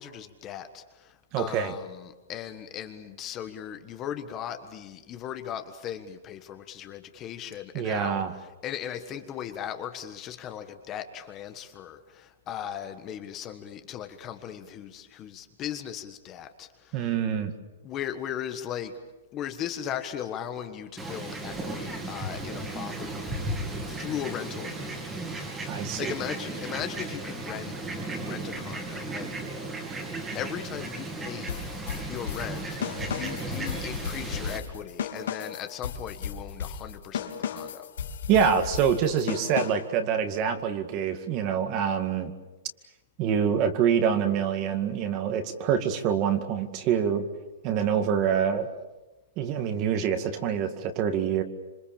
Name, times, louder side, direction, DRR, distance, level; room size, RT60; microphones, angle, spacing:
voice 1, 0.0-17.1 17.8-19.0 19.3-23.3 23.9-25.1 25.9-27.7 28.0-29.3 30.3-32.8 33.1-37.9, left 10 dB, 25° left, 8 dB, 1.5 m, -38 dB
voice 2, 1.3-1.7 7.7-8.3 16.9-17.5 25.7-26.1 38.3-42.3 43.2-47.2 47.6-48.7 49.4-51.4, right 8 dB, 30° right, 8 dB, 2.1 m, -26 dB
Fowl, 21.0-34.6, right 2 dB, 10° right, 2.8 m, -35 dB
sound 1, 31.5-40.0, left 7 dB, 75° left, 3.3 m, -35 dB
26.5 x 25.5 x 7.2 m, 1.1 s
hypercardioid pair, 160°, 0 cm